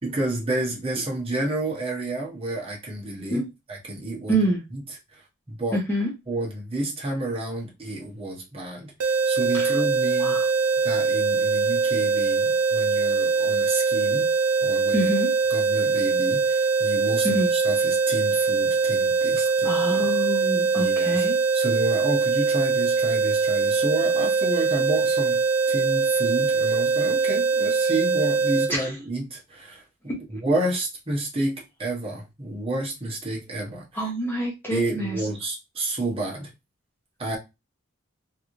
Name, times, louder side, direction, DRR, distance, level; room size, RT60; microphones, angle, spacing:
voice 1, 0.0-4.4 4.7-4.8 5.1-5.2 5.5-5.8 6.3-10.4 10.8-14.3 14.6-15.1 15.5-20.1 20.7-21.3 21.5-25.4 25.7-29.8 30.3-34.1 34.7-36.5 37.2-37.4, right 2 dB, 25° right, 1.1 m, -30 dB
voice 2, 5.7-6.1 9.5-9.8 10.2-10.5 14.9-15.3 17.2-17.5 19.6-21.4 28.7-28.9 33.9-35.2, right 1 dB, 10° left, 1.0 m, -26 dB
sound 1, 9.0-28.7, right 4 dB, 80° right, 0.5 m, -22 dB
3.0 x 2.6 x 3.1 m
head